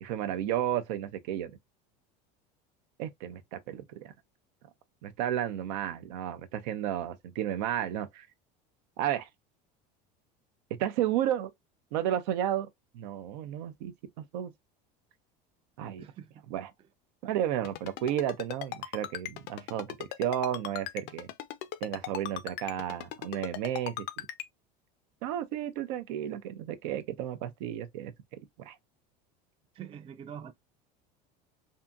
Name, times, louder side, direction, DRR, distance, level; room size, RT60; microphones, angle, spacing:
voice 1, 0.0-1.5 3.0-4.1 5.0-8.3 9.0-9.3 10.8-11.5 11.9-12.7 12.9-13.9 14.3-14.5 15.8-16.0 16.5-16.7 17.2-21.3 21.8-24.3 25.2-28.1 28.6-28.8, right 11 dB, 80° right, 0.5 m, -32 dB
voice 2, 16.0-16.4 29.7-30.5, right 9 dB, 25° right, 0.4 m, -44 dB
Ringtone, 17.6-24.5, left 13 dB, 55° left, 0.4 m, -37 dB
2.7 x 2.6 x 2.3 m
supercardioid pair, 105°, 21 cm